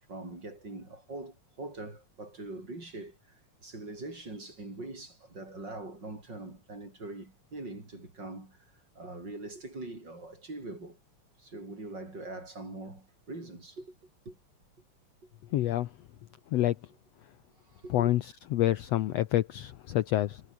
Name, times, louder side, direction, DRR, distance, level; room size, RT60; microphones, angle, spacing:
voice 1, 0.1-11.0 11.4-14.0 14.3-14.4 15.2-15.3 17.7-18.1, right 2 dB, 35° right, 7.3 m, -43 dB
voice 2, 15.5-15.9 16.5-16.7 17.9-18.2 18.5-20.4, left 14 dB, 70° left, 1.7 m, -27 dB
omnidirectional pair, 3.5 m